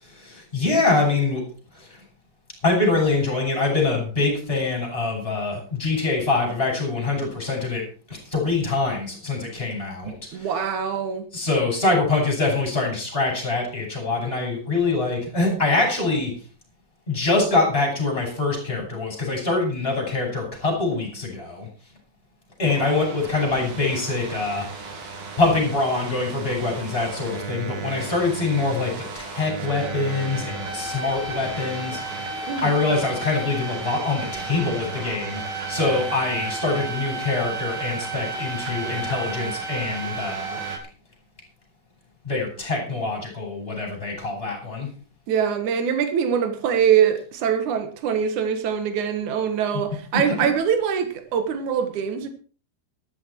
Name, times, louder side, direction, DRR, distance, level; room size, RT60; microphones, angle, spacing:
voice 1, 0.0-1.4 1.7-2.0 2.6-7.8 8.1-10.5 11.3-16.3 17.1-21.7 22.6-40.6 42.2-44.9 50.1-50.2, left 3 dB, 10° left, 6.5 m, -24 dB
voice 2, 10.3-11.3 32.5-32.7 45.3-52.3, right 8 dB, 75° right, 1.8 m, -23 dB
sound 1, 22.7-40.8, right 3 dB, 50° right, 4.1 m, -33 dB
14.0 x 12.5 x 4.5 m
omnidirectional pair, 6.0 m